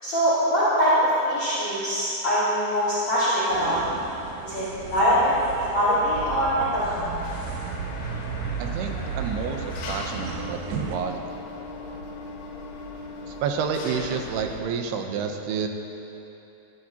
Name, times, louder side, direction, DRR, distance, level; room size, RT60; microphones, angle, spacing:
voice 1, 0.0-3.8 4.4-4.6 4.9-5.4 5.7-7.0, equal, 45° left, -12 dB, 5.1 m, -22 dB
sound 1, 3.5-11.0, right 6 dB, 70° right, 2.5 m, -34 dB
Engine, 7.2-14.6, left 3 dB, 85° left, 3.6 m, -38 dB
voice 2, 8.6-10.6 10.9-11.2 13.3-15.7, right 6 dB, 90° right, 4 dB, 3.0 m, -29 dB
23.5 x 13.0 x 2.9 m, 2.9 s
omnidirectional pair, 4.5 m